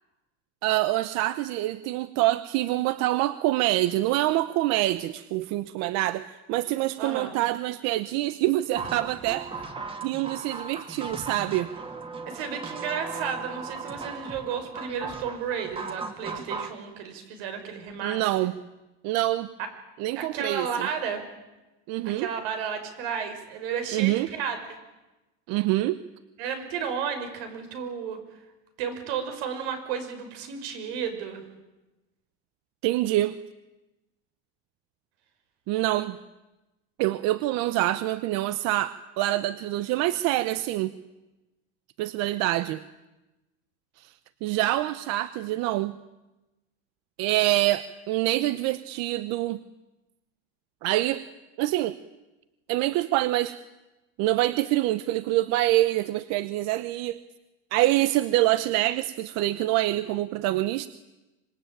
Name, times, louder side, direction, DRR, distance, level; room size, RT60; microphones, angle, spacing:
voice 1, 0.6-9.5 10.0-11.7 18.0-18.5 19.0-19.5 20.0-20.9 21.9-22.3 23.9-24.3 25.5-26.0 32.8-33.4 35.7-36.2 37.0-40.9 42.0-42.8 44.0-44.1 44.4-45.9 47.2-49.6 50.8-51.2 51.6-52.0 52.7-53.6 54.2-57.2 57.7-60.9, right 16 dB, 60° right, 14 dB, 0.9 m, -25 dB
voice 2, 7.0-7.3 12.3-18.5 20.1-21.2 22.0-24.6 26.4-28.2 28.8-31.4, right 7 dB, 90° right, 7 dB, 5.8 m, -33 dB
sound 1, 8.8-16.7, right 4 dB, 20° right, 2.2 m, -37 dB
26.0 x 21.5 x 9.1 m, 1.1 s
cardioid pair, 150°, 30 cm